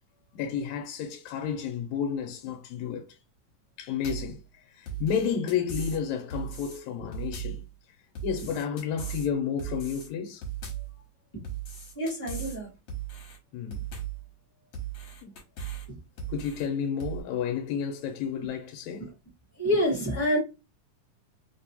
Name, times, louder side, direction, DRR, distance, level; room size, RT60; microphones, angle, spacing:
voice 1, 0.3-3.1 3.8-4.4 4.8-7.6 8.2-10.4 13.5-13.9 15.2-15.4 16.3-19.1, left 7 dB, 80° left, 1.9 m, -31 dB
sound 1, 4.0-4.4 4.9-6.0 6.3-6.8 7.1-7.6 8.2-9.3 9.6-10.1 10.4-10.9 11.4-12.6 12.9-13.4 13.7-14.2 14.7-15.9 16.2-16.7 17.0-17.2, right 8 dB, 60° left, 2.0 m, -37 dB
voice 2, 11.9-12.7 15.9-16.0 19.0-19.1 19.6-20.4, equal, 40° left, 0.4 m, -27 dB
4.7 x 2.3 x 2.7 m
omnidirectional pair, 3.3 m